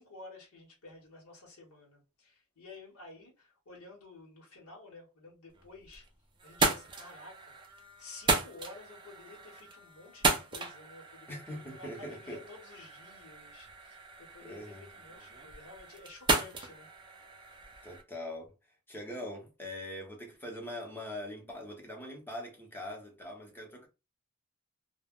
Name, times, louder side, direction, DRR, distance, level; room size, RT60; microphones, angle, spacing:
voice 1, 0.0-6.1 6.4-16.9, left 3 dB, 75° left, 1.1 m, -52 dB
sound 1, 5.5-6.1 6.4-18.0, right 3 dB, 20° right, 0.4 m, -35 dB
voice 2, 11.3-12.4 14.4-14.9 17.8-18.5 18.9-23.9, left 1 dB, 10° left, 0.7 m, -42 dB
2.2 x 2.1 x 3.5 m
head